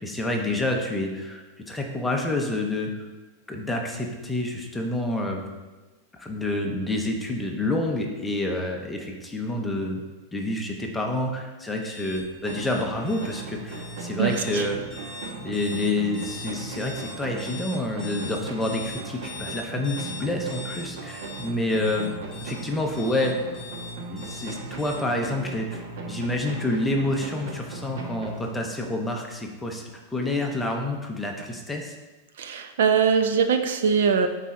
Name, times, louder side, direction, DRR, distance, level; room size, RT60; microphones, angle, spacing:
voice 1, 0.0-3.1 3.5-5.5 6.1-10.0 10.3-15.0 15.4-22.1 22.4-23.4 24.1-29.8 30.1-31.9, left 1 dB, 5° left, 1 dB, 0.6 m, -28 dB
sound 1, 11.8-24.9, left 4 dB, 15° right, 2.2 m, -41 dB
sound 2, 12.5-29.0, right 3 dB, 60° right, 1.1 m, -38 dB
voice 2, 14.2-14.7 32.4-34.3, right 6 dB, 75° right, 8 dB, 0.7 m, -22 dB
10.0 x 4.1 x 3.7 m, 1.2 s
supercardioid pair, 170°, 0 cm